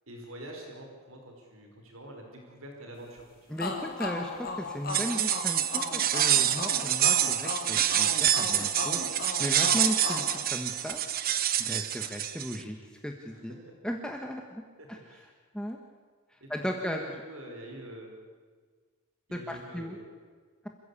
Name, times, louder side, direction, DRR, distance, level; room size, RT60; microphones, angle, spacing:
voice 1, 0.1-3.6 13.3-13.7 14.8-15.3 16.4-18.1 19.3-20.1, right 1 dB, 65° right, 1 dB, 4.9 m, -46 dB
voice 2, 3.5-11.0 11.6-12.8 13.0-13.5 13.8-14.6 14.9-15.0 15.5-15.8 16.5-17.0 19.3-20.0, equal, 5° left, 2 dB, 1.4 m, -36 dB
sound 1, 3.6-11.2, left 3 dB, 40° left, 3.0 m, -37 dB
sound 2, 4.9-12.6, right 11 dB, 40° right, 1.1 m, -27 dB
28.0 x 15.5 x 8.5 m, 1.5 s
head